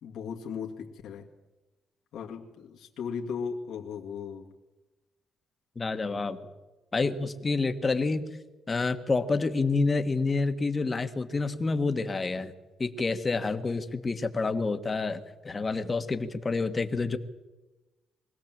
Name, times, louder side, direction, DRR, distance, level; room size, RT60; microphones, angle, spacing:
voice 1, 0.0-1.3 2.1-4.5, left 6 dB, 75° left, 0 dB, 2.2 m, -37 dB
voice 2, 5.7-6.4 6.9-8.2 8.7-12.5 12.8-17.2, left 3 dB, 30° left, 9 dB, 1.6 m, -28 dB
23.0 x 16.5 x 7.6 m, 1.1 s
cardioid pair, 90°, 0 cm